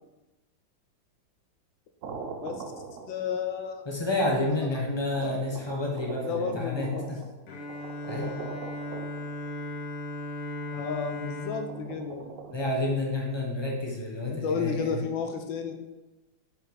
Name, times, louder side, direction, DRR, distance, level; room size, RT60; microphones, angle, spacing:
sound 1, 2.0-3.6 4.4-4.5 5.1-9.7 11.5-12.5, right 4 dB, 85° right, 0.7 m, -42 dB
voice 1, 3.1-3.8 5.2-5.4 6.0-7.0 10.7-12.3 14.2-15.7, left 6 dB, 80° left, 6 dB, 1.5 m, -32 dB
voice 2, 3.8-7.3 8.1-8.4 12.5-15.1, left 2 dB, 20° left, -2 dB, 0.9 m, -30 dB
Bowed string instrument, 7.5-13.4, left 1 dB, 55° left, 1.2 m, -38 dB
6.3 x 4.3 x 4.9 m, 1.1 s
omnidirectional pair, 2.1 m